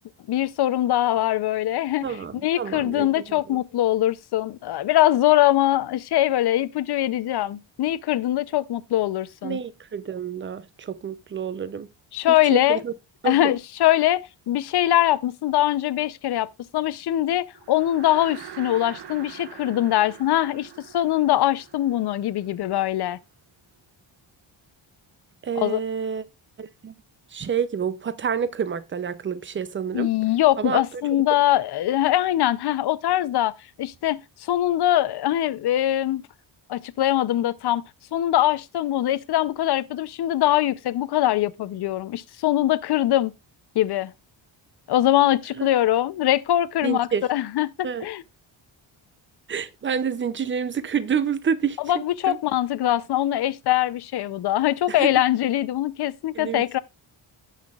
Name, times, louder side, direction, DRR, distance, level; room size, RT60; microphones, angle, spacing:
voice 1, 0.3-9.6 12.1-12.8 13.2-16.5 16.7-23.2 25.6-25.8 29.9-33.5 33.8-36.2 36.7-37.8 38.1-43.3 43.8-44.1 44.9-48.2 51.8-56.8, left 13 dB, 55° left, 0.6 m, -22 dB
voice 2, 2.0-3.1 9.4-11.9 12.3-12.9 13.2-13.5 25.4-26.2 26.6-26.9 27.3-30.1 30.6-30.8 45.5-45.7 46.8-47.2 47.8-48.1 49.5-51.8 52.3-52.4 54.9-55.1 56.3-56.8, right 7 dB, 25° right, 0.4 m, -28 dB
sound 1, 17.5-23.0, right 10 dB, 55° right, 0.9 m, -43 dB
16.5 x 5.8 x 2.3 m
wide cardioid pair, 175°, 47 cm